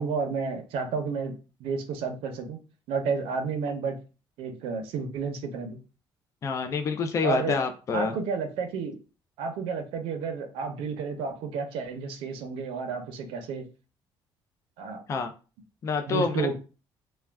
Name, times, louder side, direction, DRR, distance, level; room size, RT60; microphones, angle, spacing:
voice 1, 0.0-2.6 2.9-4.0 4.4-5.8 7.2-7.6 7.9-9.0 9.4-13.7 14.8-15.0 16.0-16.5, right 5 dB, 90° right, 5 dB, 0.6 m, -31 dB
voice 2, 6.4-8.2 15.1-15.3 15.8-16.5, left 4 dB, 35° left, 6 dB, 0.4 m, -27 dB
2.3 x 2.2 x 3.3 m, 0.34 s
cardioid pair, 140°, 9 cm